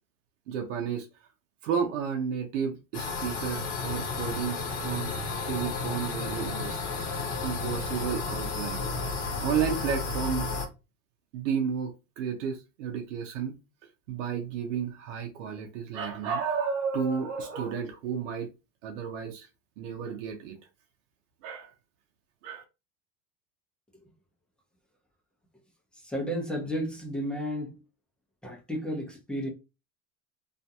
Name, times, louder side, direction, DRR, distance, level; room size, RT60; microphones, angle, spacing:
voice 1, 0.5-1.1 1.6-7.0 7.4-8.8 9.4-10.6 11.3-13.6 14.1-18.5 18.8-19.5 19.8-20.6 21.4-21.7 22.4-22.6, right 7 dB, 85° right, 0.7 m, -32 dB
sound 1, 2.9-10.7, left 4 dB, 40° left, 0.9 m, -32 dB
voice 2, 25.9-27.8 28.4-29.5, equal, 5° left, 0.6 m, -32 dB
2.5 x 2.1 x 2.7 m
supercardioid pair, 130°, 37 cm